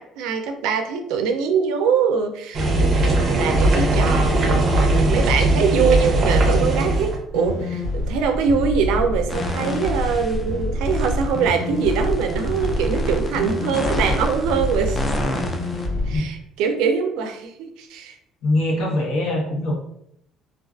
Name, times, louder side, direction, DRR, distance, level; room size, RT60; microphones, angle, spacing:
voice 1, 0.0-15.0 16.1-18.2, right 6 dB, 85° right, 6 dB, 0.3 m, -23 dB
sound 1, 2.5-7.2, right 2 dB, 35° right, 0.5 m, -19 dB
sound 2, 7.3-16.2, left 1 dB, 85° left, 1.3 m, -26 dB
sound 3, 9.3-10.4 10.8-15.9, left 2 dB, 25° left, 0.3 m, -31 dB
voice 2, 18.4-19.7, left 1 dB, 70° left, -2 dB, 0.9 m, -22 dB
2.4 x 2.3 x 2.3 m, 0.74 s
cardioid pair, 145°, 0 cm